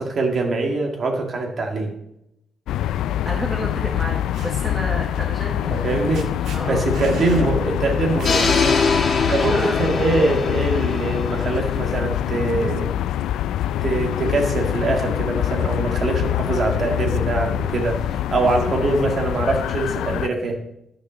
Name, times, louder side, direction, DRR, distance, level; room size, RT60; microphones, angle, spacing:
voice 1, 0.0-1.9 5.7-8.6 9.3-12.9 13.8-20.6, right 2 dB, 35° right, 2 dB, 1.8 m, -23 dB
sound 1, 2.7-20.3, left 11 dB, 75° left, 0.4 m, -25 dB
voice 2, 3.2-5.9 6.5-6.9 9.2-9.8, equal, 5° right, 0 dB, 1.2 m, -30 dB
sound 2, 4.0-4.5 5.8-5.9 6.1-6.6 6.9-7.5 7.8-7.9 8.2-9.1 9.6-10.0, right 4 dB, 65° right, 1.7 m, -38 dB
sound 3, 8.2-12.3, left 4 dB, 30° left, 1.5 m, -23 dB
11.5 x 5.9 x 6.1 m, 0.81 s
cardioid pair, 175°, 0 cm